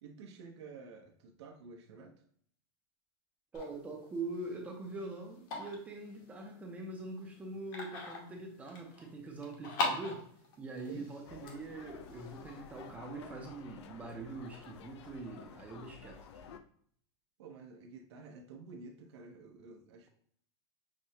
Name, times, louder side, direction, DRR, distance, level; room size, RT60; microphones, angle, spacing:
voice 1, 0.0-2.2 10.9-11.1 17.4-20.1, right 4 dB, 85° right, 2 dB, 0.8 m, -51 dB
sound 1, 3.5-12.9, left 3 dB, 55° left, 1.0 m, -43 dB
voice 2, 3.5-10.2 10.6-16.4, right 2 dB, 10° right, 2 dB, 0.5 m, -43 dB
sound 2, 11.3-16.6, left 6 dB, 85° left, 0.5 m, -52 dB
6.2 x 2.1 x 2.8 m, 0.62 s
supercardioid pair, 175°, 14 cm